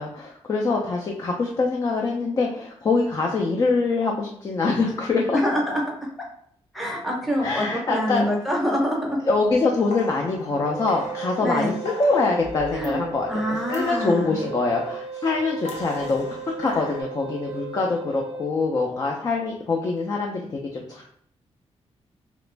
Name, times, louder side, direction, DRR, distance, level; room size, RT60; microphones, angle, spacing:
voice 1, 0.0-5.4 7.4-8.3 9.3-16.3 16.6-21.1, left 3 dB, 35° left, 0 dB, 0.4 m, -24 dB
voice 2, 5.3-5.8 6.7-9.2 11.4-11.8 12.7-13.0 13.3-14.5, equal, ahead, -1 dB, 0.7 m, -25 dB
sound 1, 9.6-13.3 13.7-15.2 15.6-17.0, left 2 dB, 80° left, 0.6 m, -39 dB
Wind instrument woodwind instrument, 10.7-18.5, right 3 dB, 50° right, 0.5 m, -36 dB
2.9 x 2.4 x 3.2 m, 0.66 s
wide cardioid pair, 165°, 11 cm